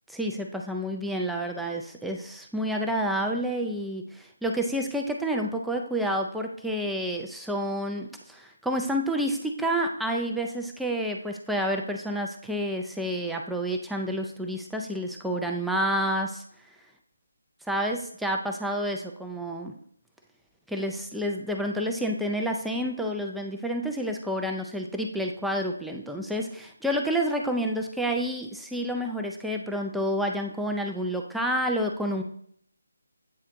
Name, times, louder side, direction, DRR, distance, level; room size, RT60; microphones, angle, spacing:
voice 1, 0.1-16.4 17.7-19.7 20.7-32.2, equal, ahead, 1 dB, 0.4 m, -29 dB
8.6 x 3.2 x 3.8 m, 0.65 s
figure-of-eight pair, 155°, 0 cm